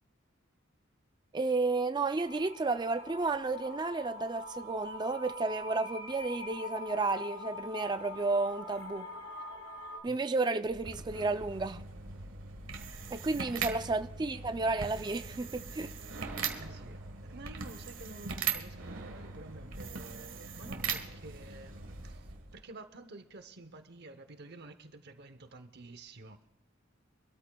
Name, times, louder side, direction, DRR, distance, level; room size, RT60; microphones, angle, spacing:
voice 1, 1.3-9.1 10.0-11.8 13.1-15.9, right 3 dB, 20° right, 10 dB, 0.4 m, -32 dB
sound 1, 2.2-10.0, left 2 dB, 80° left, 2.8 m, -43 dB
sound 2, 10.6-22.6, right 6 dB, 80° right, 1.5 m, -40 dB
voice 2, 16.5-26.5, right 2 dB, 55° right, 9 dB, 0.8 m, -50 dB
25.5 x 13.0 x 2.3 m, 0.88 s
head